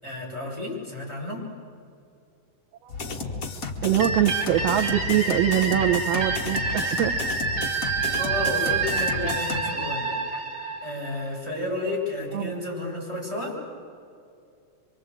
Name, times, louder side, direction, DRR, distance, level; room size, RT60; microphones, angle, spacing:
voice 1, 0.0-1.5 7.9-10.1 10.8-13.6, left 2 dB, 10° left, -4 dB, 6.4 m, -32 dB
sound 1, 2.9-9.6, left 4 dB, 40° left, 1.2 m, -33 dB
voice 2, 3.8-7.1 12.3-12.5, right 12 dB, 70° right, 5 dB, 1.7 m, -23 dB
sound 2, 4.0-11.6, right 4 dB, 40° right, 4.3 m, -28 dB
26.0 x 24.5 x 8.1 m, 2.4 s
omnidirectional pair, 3.6 m